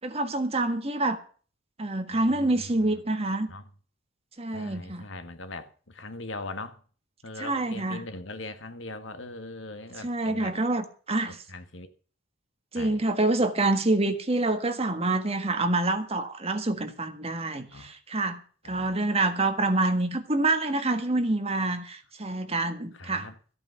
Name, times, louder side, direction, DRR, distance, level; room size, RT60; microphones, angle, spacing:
voice 1, 0.0-1.2 1.8-3.5 4.4-5.0 7.4-8.0 10.0-11.4 12.7-23.3, right 2 dB, 30° right, 1.6 m, -27 dB
voice 2, 2.3-3.0 3.5-3.7 4.5-6.8 7.2-10.6 11.5-11.9 12.7-13.0 17.7-17.9 18.6-19.0 22.9-23.3, left 2 dB, 70° left, 1.8 m, -40 dB
14.5 x 8.6 x 7.0 m
head